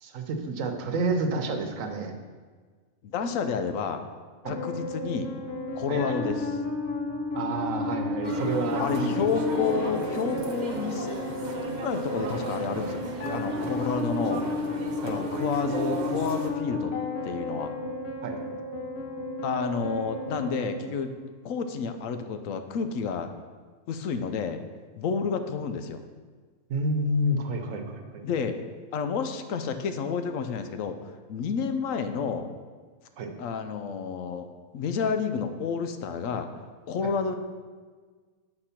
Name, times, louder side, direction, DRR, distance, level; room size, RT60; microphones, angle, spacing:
voice 1, 0.0-2.2 4.4-4.6 5.9-6.2 7.3-9.3 15.0-15.1 18.2-18.4 26.7-28.2 33.2-33.3 37.0-37.1, right 2 dB, 75° right, 5 dB, 1.2 m, -29 dB
voice 2, 3.0-4.0 4.5-5.3 5.7-6.5 8.8-11.2 11.8-14.5 15.0-16.9 17.2-17.7 19.4-21.1 21.4-23.3 23.9-24.6 25.0-26.0 28.2-28.5 28.9-32.5 33.4-34.5 34.7-36.5 36.9-37.4, left 6 dB, 80° left, 8 dB, 1.0 m, -30 dB
sound 1, 4.4-21.4, left 2 dB, 55° left, 1.0 m, -33 dB
sound 2, 8.2-16.5, right 3 dB, 45° right, 0.7 m, -35 dB
8.0 x 4.4 x 5.7 m, 1.5 s
omnidirectional pair, 1.4 m